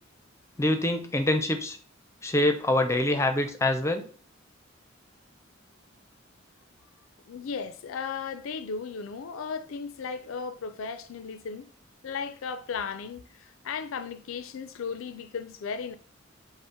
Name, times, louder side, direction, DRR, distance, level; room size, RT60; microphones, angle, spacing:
voice 1, 0.6-1.8 2.2-4.0, left 1 dB, 15° left, 0.5 m, -25 dB
voice 2, 7.3-11.7 12.0-15.9, left 5 dB, 80° left, 0.4 m, -36 dB
5.4 x 2.1 x 4.3 m
head